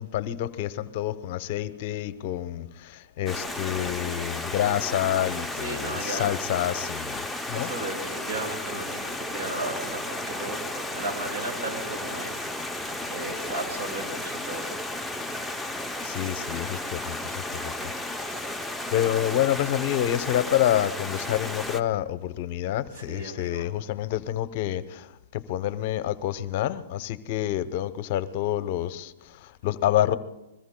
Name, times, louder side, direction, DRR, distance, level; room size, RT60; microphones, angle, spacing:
voice 1, 0.0-7.7 16.0-17.7 18.2-18.5 18.9-30.1, left 12 dB, 50° left, 13 dB, 0.7 m, -28 dB
Stream, 3.3-21.8, left 1 dB, ahead, 0.6 m, -33 dB
voice 2, 5.5-6.4 7.5-12.8 13.1-14.7 22.9-23.7, right 2 dB, 60° right, 2 dB, 5.9 m, -35 dB
25.0 x 21.5 x 2.2 m, 1.0 s
hypercardioid pair, 130°, 0 cm